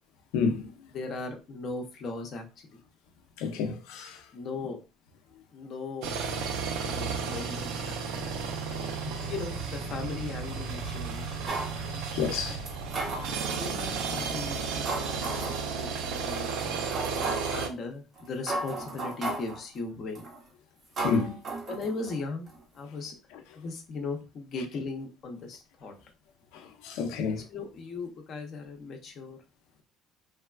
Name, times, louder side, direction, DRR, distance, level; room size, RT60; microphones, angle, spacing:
voice 1, 0.3-0.6 3.4-4.2 9.1-9.2 12.1-12.6 21.0-21.3 26.8-27.4, left 5 dB, 90° left, 0.6 m, -29 dB
voice 2, 0.9-2.8 4.3-4.8 5.5-6.1 6.8-8.3 8.6-8.8 9.3-11.5 13.2-16.7 17.5-20.2 21.7-22.5 22.7-23.1 23.5-25.9 27.2-29.4, left 3 dB, 35° left, 0.6 m, -38 dB
sound 1, 6.0-17.7, right 5 dB, 75° right, 0.4 m, -33 dB
sound 2, 11.5-11.8 12.7-13.6 14.2-14.4 14.9-15.7 16.2-16.3 16.9-17.6 18.2-18.3 18.5-19.6 20.2-20.4 21.0-22.2 22.5-22.6, right 2 dB, 25° right, 0.6 m, -34 dB
3.1 x 2.3 x 2.3 m
cardioid pair, 180°, 0 cm